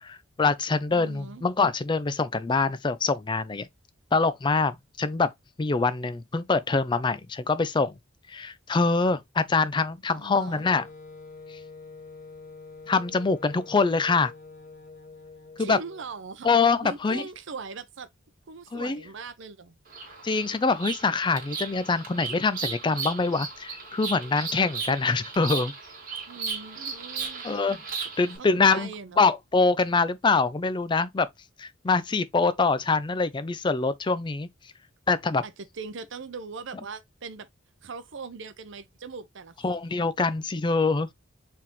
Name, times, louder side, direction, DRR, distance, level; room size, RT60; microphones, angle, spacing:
voice 1, 0.0-3.7 4.1-5.3 5.6-7.9 8.3-10.9 12.9-14.3 15.6-15.8 16.4-17.2 18.7-19.0 20.2-25.7 27.4-27.8 28.2-28.9 29.2-31.3 31.6-34.5 35.1-35.4 39.6-41.1, left 4 dB, 25° left, 0.4 m, -24 dB
voice 2, 0.9-1.5 10.1-10.7 15.6-16.5 16.8-18.1 18.5-19.8 26.3-27.7 28.2-29.3 35.4-37.5 37.8-39.8, right 4 dB, 65° right, 0.6 m, -40 dB
Wind instrument woodwind instrument, 10.5-16.2, left 4 dB, 40° left, 1.1 m, -46 dB
Bird vocalization bird call bird song, 19.9-28.4, right 5 dB, 45° right, 2.1 m, -36 dB
4.7 x 3.5 x 3.0 m
head